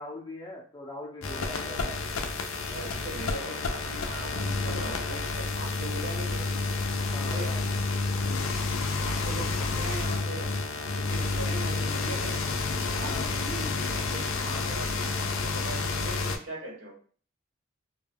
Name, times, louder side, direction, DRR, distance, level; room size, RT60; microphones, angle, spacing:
voice 1, 0.0-2.0 2.7-2.9 7.1-7.6 8.2-8.5 13.1-13.3, left 1 dB, 20° left, -1 dB, 0.4 m, -41 dB
sound 1, 1.2-16.4, left 3 dB, 90° left, 0.4 m, -30 dB
voice 2, 2.5-6.4 7.2-7.5 9.0-12.4 12.9-16.9, right 1 dB, 70° right, -1 dB, 0.9 m, -40 dB
2.2 x 2.1 x 3.2 m, 0.43 s
head